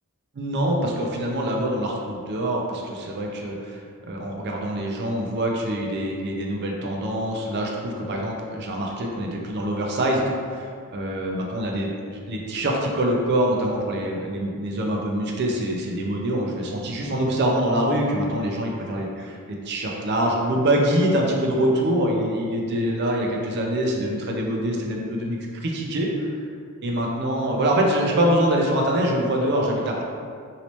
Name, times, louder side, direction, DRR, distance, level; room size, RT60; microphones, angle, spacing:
voice 1, 0.3-19.4 19.7-26.1 26.8-30.0, right 1 dB, 50° right, -1 dB, 0.5 m, -24 dB
3.0 x 2.8 x 3.0 m, 2.2 s
head